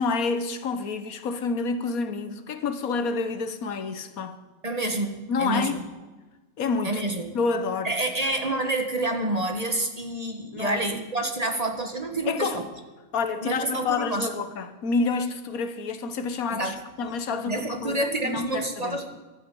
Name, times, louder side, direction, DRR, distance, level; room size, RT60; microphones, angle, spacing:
voice 1, 0.0-4.4 5.3-5.9 6.6-7.0 7.3-8.0 10.5-10.8 12.3-12.6 13.1-19.0, left 4 dB, 80° left, 1.5 m, -28 dB
voice 2, 4.6-5.8 6.8-7.3 7.8-12.6 13.4-14.3 16.5-16.8 17.5-19.1, right 2 dB, 30° right, 1.4 m, -28 dB
15.5 x 12.5 x 5.5 m
omnidirectional pair, 1.5 m